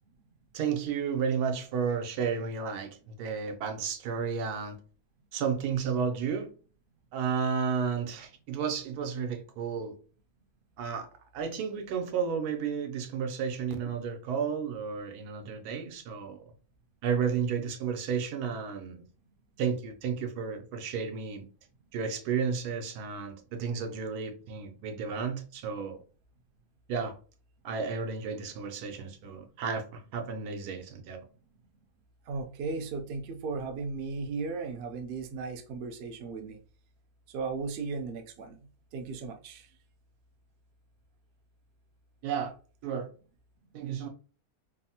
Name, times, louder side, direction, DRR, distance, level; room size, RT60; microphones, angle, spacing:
voice 1, 0.5-4.8 5.3-6.5 7.1-9.9 10.8-11.1 11.3-16.5 17.0-19.0 19.6-21.4 21.9-26.0 26.9-27.1 27.6-31.2 42.2-42.5 42.8-43.1 43.7-44.1, right 6 dB, 90° right, 1.2 m, -32 dB
voice 2, 32.3-36.6 37.3-39.7, right 4 dB, 65° right, 0.6 m, -36 dB
3.3 x 2.0 x 2.7 m
omnidirectional pair, 1.6 m